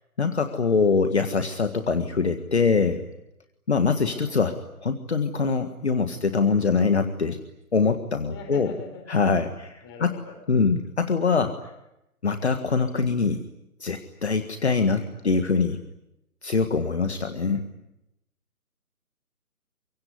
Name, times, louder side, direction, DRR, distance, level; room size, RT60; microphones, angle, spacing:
voice 1, 0.2-3.0 3.7-7.4 7.7-8.7 9.1-10.2 10.5-11.6 12.2-13.4 13.8-15.8 16.4-17.6, left 4 dB, 45° left, 8 dB, 1.8 m, -23 dB
voice 2, 4.0-4.4 8.3-9.2 9.8-10.3 17.1-17.7, left 4 dB, 15° left, 4 dB, 4.4 m, -43 dB
25.0 x 23.5 x 9.7 m, 0.89 s
figure-of-eight pair, 150°, 45 cm